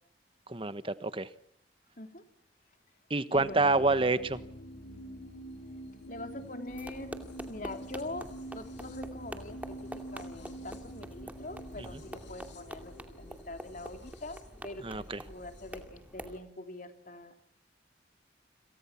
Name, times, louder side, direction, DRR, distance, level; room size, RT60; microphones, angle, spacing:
voice 1, 0.5-1.3 3.1-4.4 11.8-11.9 14.8-15.2, right 3 dB, 30° right, 13 dB, 1.3 m, -28 dB
sound 1, 3.3-15.8, right 1 dB, 75° left, 7.3 m, -46 dB
voice 2, 3.3-3.9 6.1-7.2 7.5-17.4, left 2 dB, 45° left, 6 dB, 3.4 m, -44 dB
sound 2, 6.7-16.4, equal, 10° right, 2.4 m, -46 dB
29.5 x 27.5 x 6.0 m, 0.71 s
head